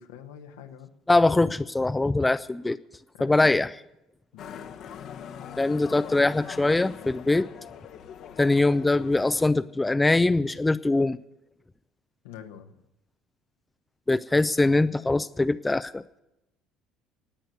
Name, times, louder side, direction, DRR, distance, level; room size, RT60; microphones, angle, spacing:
voice 1, 0.0-0.9 3.1-3.6 4.3-4.6 12.2-12.8, left 9 dB, 75° left, 5 dB, 1.4 m, -45 dB
voice 2, 1.1-2.8 3.2-3.7 5.6-7.5 8.4-11.2 14.1-16.0, left 2 dB, 15° left, 12 dB, 0.6 m, -22 dB
Motorcycle, 4.4-9.5, left 8 dB, 55° left, 1.1 m, -42 dB
18.0 x 9.1 x 7.7 m, 0.88 s
hypercardioid pair, 60°, 0 cm